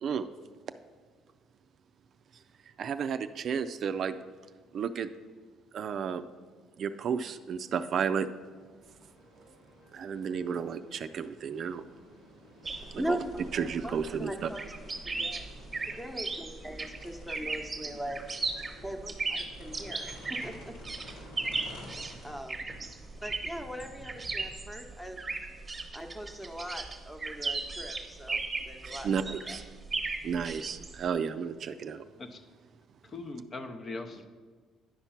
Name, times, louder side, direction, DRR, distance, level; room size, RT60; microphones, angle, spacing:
voice 1, 2.8-4.2 4.7-5.1 5.7-6.2 6.8-8.3 9.9-11.8 12.9-13.2 13.5-14.5 29.0-29.6 30.2-32.0, right 7 dB, 55° right, 10 dB, 0.4 m, -32 dB
sound 1, 8.8-24.5, left 1 dB, 90° left, 2.6 m, -52 dB
sound 2, 12.6-31.1, right 3 dB, 25° right, 1.0 m, -37 dB
voice 2, 13.0-14.7 15.2-15.4 15.9-18.2 18.8-20.7 22.2-22.9 23.2-25.2 25.9-29.6, equal, 5° left, 5 dB, 1.0 m, -40 dB
voice 3, 33.0-34.3, left 3 dB, 40° left, 6 dB, 0.7 m, -40 dB
10.0 x 4.4 x 5.8 m, 1.5 s
supercardioid pair, 85°, 0 cm